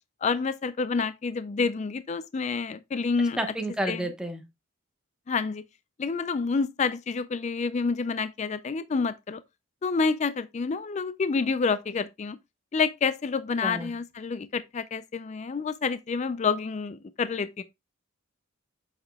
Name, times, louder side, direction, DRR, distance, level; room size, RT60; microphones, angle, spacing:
voice 1, 0.2-3.4 3.9-4.0 5.3-5.6 6.0-9.4 9.8-12.4 12.7-17.6, left 4 dB, 35° left, 0.3 m, -28 dB
voice 2, 3.4-4.4 13.6-13.9, right 1 dB, 5° right, 1.0 m, -30 dB
7.9 x 5.7 x 2.2 m
head